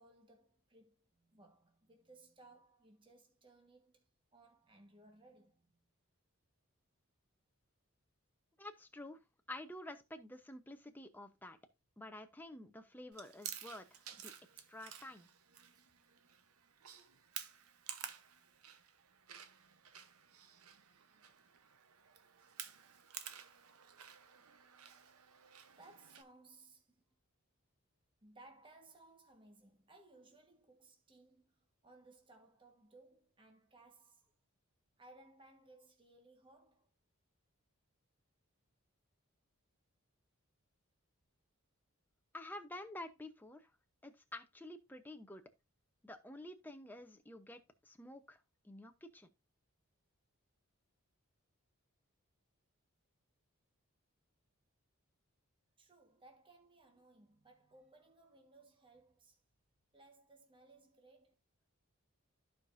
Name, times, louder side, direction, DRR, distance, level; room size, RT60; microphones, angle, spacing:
voice 1, 0.0-5.9 25.7-27.1 28.2-34.3 35.0-36.9 55.8-59.4 59.9-61.3, right 2 dB, 20° right, 1.4 m, -63 dB
voice 2, 8.6-9.2 9.5-11.6 12.0-15.3 42.3-43.7 44.0-45.4 46.0-48.4 48.6-49.3, left 1 dB, 10° left, 0.8 m, -50 dB
Chewing mastication, 13.1-26.2, right 9 dB, 85° right, 0.9 m, -52 dB
14.0 x 5.0 x 2.6 m
head